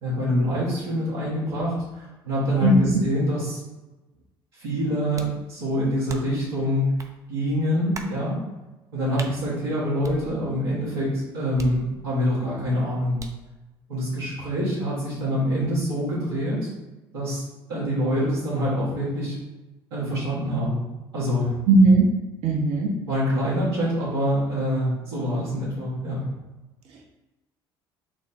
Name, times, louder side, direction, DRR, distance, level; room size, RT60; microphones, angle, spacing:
voice 1, 0.0-3.6 4.5-7.0 7.3-8.4 8.9-13.2 13.9-16.7 17.1-17.4 17.7-19.4 19.9-20.8 21.1-21.6 23.1-26.3, equal, 80° right, -8 dB, 1.4 m, -25 dB
voice 2, 2.6-3.0 21.7-22.1 22.4-22.9, right 2 dB, 60° right, 0 dB, 0.8 m, -17 dB
sound 1, 5.2-5.4 6.1-6.5 7.0-7.1 7.9-8.2 9.2-9.4 10.0-10.7 11.6-12.3 13.2-13.5, right 4 dB, 25° right, 0.4 m, -40 dB
6.1 x 2.1 x 2.7 m, 1.1 s
figure-of-eight pair, 60°, 12 cm